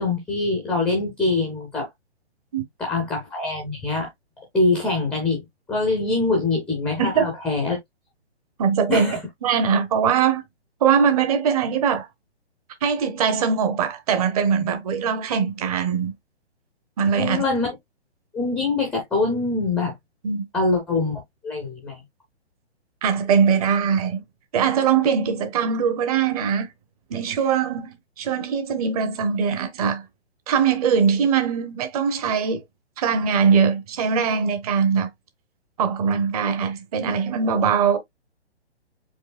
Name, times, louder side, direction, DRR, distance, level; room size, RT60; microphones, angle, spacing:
voice 1, 0.0-1.9 2.8-4.1 4.5-7.8 8.9-9.2 17.2-17.8 18.3-20.0 20.5-22.0, left 3 dB, 5° left, 0.5 m, -24 dB
voice 2, 8.6-10.4 10.8-12.1 12.8-16.1 17.0-17.4 20.2-20.4 23.0-24.2 24.5-26.7 27.1-30.0 30.5-32.6 33.0-35.1 35.8-38.0, right 6 dB, 35° right, 0.9 m, -21 dB
4.7 x 3.1 x 2.4 m
hypercardioid pair, 135°, 34 cm